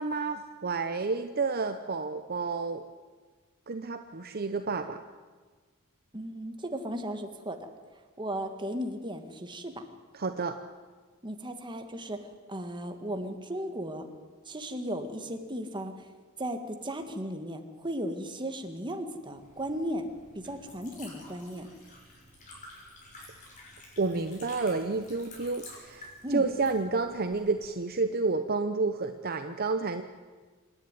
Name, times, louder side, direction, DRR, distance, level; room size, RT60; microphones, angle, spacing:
voice 1, 0.0-2.8 3.7-5.0 10.1-10.6 24.0-30.0, right 4 dB, 45° right, 8 dB, 0.8 m, -30 dB
voice 2, 6.1-7.7 8.2-9.8 11.2-12.2 12.5-14.1 14.4-16.1 16.4-21.7 26.2-26.5, equal, 20° right, 6 dB, 1.7 m, -36 dB
Liquid, 19.2-27.7, left 2 dB, 35° left, 6.3 m, -51 dB
26.5 x 11.0 x 9.8 m, 1.4 s
head